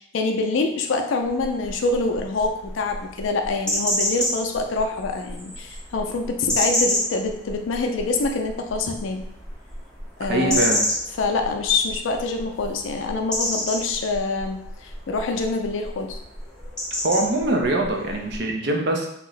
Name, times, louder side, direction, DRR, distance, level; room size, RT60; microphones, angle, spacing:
voice 1, 0.0-9.2 10.2-10.6 11.2-14.6 15.1-16.2, left 3 dB, 75° left, 4 dB, 0.4 m, -25 dB
sound 1, 1.2-18.4, left 1 dB, 5° left, 0.6 m, -30 dB
voice 2, 10.3-10.8 17.0-19.1, right 2 dB, 55° right, 2 dB, 0.5 m, -23 dB
2.9 x 2.0 x 3.9 m, 0.76 s
head